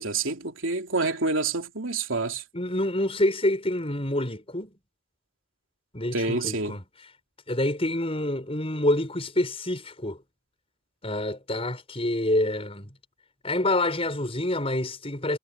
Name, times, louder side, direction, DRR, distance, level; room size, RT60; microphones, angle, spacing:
voice 1, 0.0-2.4 6.1-6.7, right 3 dB, 75° right, 3.1 m, -27 dB
voice 2, 2.5-4.7 5.9-6.8 7.5-10.2 11.0-12.9 13.4-15.4, left 1 dB, 30° left, 6.5 m, -27 dB
head